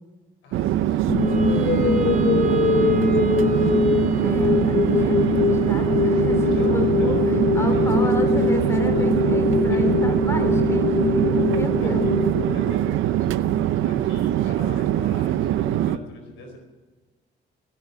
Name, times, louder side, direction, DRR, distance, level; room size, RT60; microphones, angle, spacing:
voice 1, 0.4-2.1 2.7-3.7 6.4-7.3 9.7-9.9 11.4-12.1 12.5-16.6, left 2 dB, 85° left, 3 dB, 4.4 m, -43 dB
Chatter / Fixed-wing aircraft airplane, 0.5-16.0, right 12 dB, 85° right, 0.7 m, -22 dB
sound 1, 1.1-13.1, left 6 dB, 35° left, 0.7 m, -23 dB
Wind instrument woodwind instrument, 1.1-13.4, right 2 dB, 40° right, 3.8 m, -35 dB
voice 2, 4.2-7.2 7.5-12.1, left 1 dB, 15° left, 5 dB, 3.0 m, -32 dB
17.0 x 9.2 x 8.2 m, 1.3 s
cardioid pair, 90°, 20 cm